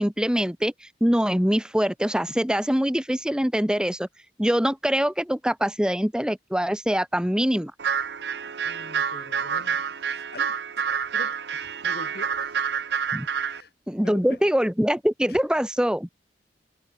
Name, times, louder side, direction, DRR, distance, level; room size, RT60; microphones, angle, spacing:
voice 1, 0.0-4.1 4.4-7.7 13.1-13.3 13.9-16.1, equal, 5° right, 1.0 m, -23 dB
sound 1, 7.8-13.6, right 7 dB, 70° right, 0.7 m, -28 dB
voice 2, 8.6-9.9 10.3-10.6 11.1-12.6 13.4-13.7 14.0-14.4 15.3-15.4, left 2 dB, 60° left, 2.0 m, -43 dB
head